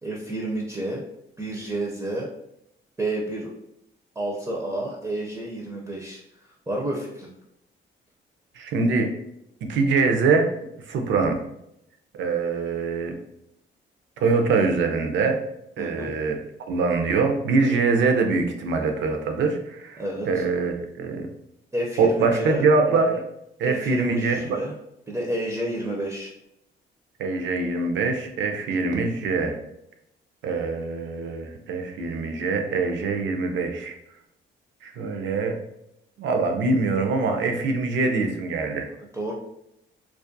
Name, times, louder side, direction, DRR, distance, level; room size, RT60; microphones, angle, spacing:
voice 1, 0.0-1.0 1.4-2.3 3.0-3.5 4.2-6.2 6.7-7.3 15.8-16.1 20.0-20.4 21.7-22.7 23.6-24.8 25.1-26.3 39.0-39.3, right 1 dB, 15° right, -2 dB, 0.4 m, -30 dB
voice 2, 8.6-9.1 9.6-10.4 10.9-11.4 12.2-13.2 14.2-15.4 15.8-16.4 16.7-21.3 22.0-23.2 23.6-24.6 27.2-29.6 30.4-34.0 34.8-35.6 36.2-38.9, right 4 dB, 70° right, 5 dB, 0.5 m, -23 dB
2.3 x 2.2 x 2.5 m, 0.80 s
cardioid pair, 90°, 20 cm